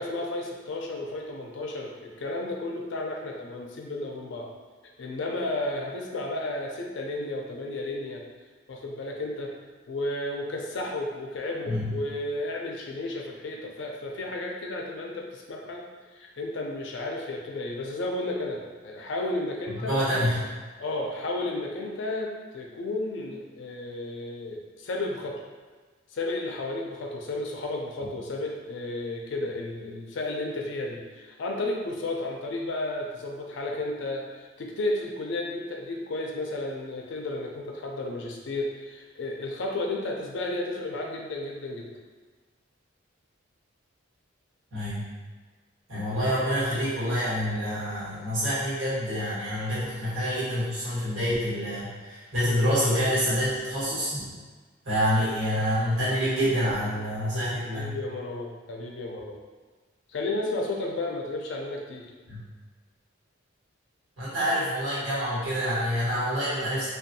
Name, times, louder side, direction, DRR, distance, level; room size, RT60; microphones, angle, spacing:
voice 1, 0.0-4.5 5.0-8.2 8.7-9.5 9.9-15.8 16.1-19.9 20.8-25.4 26.1-41.9 55.2-55.3 57.6-59.4 60.1-62.0, left 2 dB, 60° left, 0 dB, 0.4 m, -33 dB
voice 2, 19.7-20.4 28.0-28.1 44.7-45.1 45.9-54.3 54.8-58.0 62.3-62.4 64.2-66.9, equal, 75° right, -10 dB, 1.3 m, -27 dB
2.6 x 2.3 x 2.6 m, 1.4 s
head